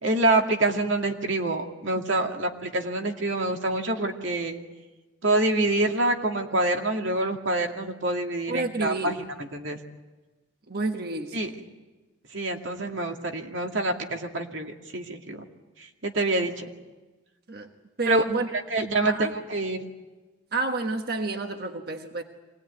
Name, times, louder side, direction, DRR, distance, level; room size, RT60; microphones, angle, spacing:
voice 1, 0.0-4.6 5.2-9.2 9.5-9.8 11.3-11.5 12.3-15.4 15.8-16.7 18.1-18.2 18.7-19.9, right 2 dB, 70° right, 3 dB, 2.3 m, -26 dB
voice 2, 8.5-9.1 10.7-11.4 17.5-17.7 18.0-18.5 19.0-19.3 20.5-22.2, right 3 dB, 50° right, 5 dB, 1.4 m, -29 dB
25.5 x 19.5 x 9.4 m, 1.2 s
head